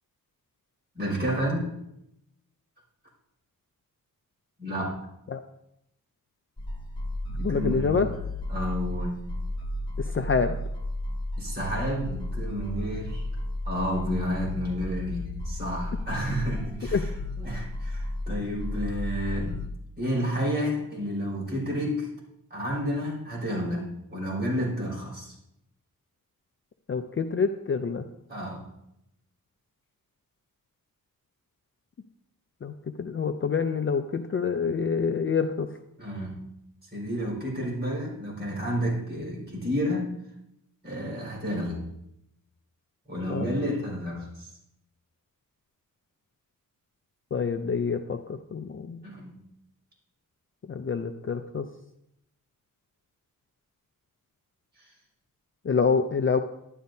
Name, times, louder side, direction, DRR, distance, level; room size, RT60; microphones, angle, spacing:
voice 1, 0.9-1.7 4.6-4.9 7.3-8.1 8.5-9.2 11.4-13.2 13.7-19.6 20.0-22.1 22.5-25.3 28.3-28.7 36.0-36.4 36.9-40.1 40.8-41.8 43.1-44.5 49.0-49.4, equal, 30° right, -3 dB, 4.6 m, -30 dB
sound 1, 6.6-19.7, left 1 dB, 15° left, 1.2 m, -33 dB
voice 2, 7.4-8.1 10.1-10.5 16.9-17.1 26.9-28.0 32.6-35.7 43.3-43.5 47.3-49.0 50.7-51.7 55.6-56.4, left 5 dB, 35° left, 7 dB, 0.5 m, -27 dB
11.5 x 11.0 x 2.7 m, 0.80 s
wide cardioid pair, 140°, 34 cm